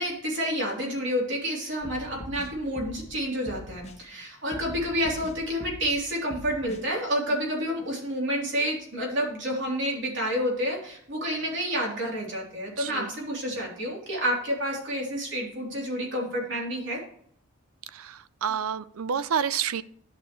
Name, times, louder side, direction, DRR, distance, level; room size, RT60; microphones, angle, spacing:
voice 1, 0.0-17.0, equal, 55° right, -2 dB, 3.3 m, -29 dB
sound 1, 1.8-3.1 3.4-4.0 4.5-6.0 6.3-6.8, left 1 dB, 30° left, 1.2 m, -42 dB
voice 2, 12.8-13.1 17.9-19.8, right 7 dB, 90° right, 16 dB, 0.5 m, -29 dB
11.0 x 6.7 x 3.1 m, 0.64 s
head